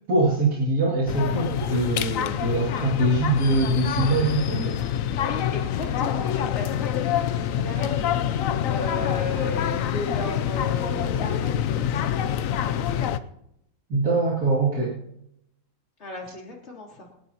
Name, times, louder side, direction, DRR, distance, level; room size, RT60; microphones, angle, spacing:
voice 1, 0.1-4.8 13.9-15.0, right 2 dB, 55° right, -6 dB, 3.1 m, -23 dB
sound 1, 1.1-13.2, left 9 dB, 65° left, 0.9 m, -26 dB
voice 2, 5.2-8.1 8.7-12.1 16.0-17.1, left 3 dB, 40° left, -2 dB, 3.5 m, -35 dB
27.5 x 11.0 x 2.9 m, 0.79 s
omnidirectional pair, 1.9 m